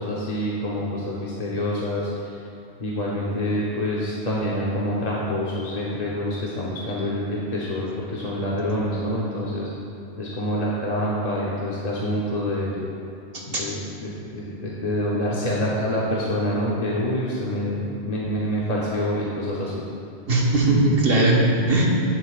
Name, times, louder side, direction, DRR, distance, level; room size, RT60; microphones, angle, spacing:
voice 1, 0.0-2.1 2.8-9.7 10.2-12.8 13.5-19.8, equal, 40° left, -6 dB, 1.0 m, -26 dB
voice 2, 13.3-13.7 20.3-21.9, right 2 dB, 60° right, -3 dB, 1.5 m, -19 dB
11.0 x 9.1 x 2.4 m, 2.7 s
omnidirectional pair, 1.1 m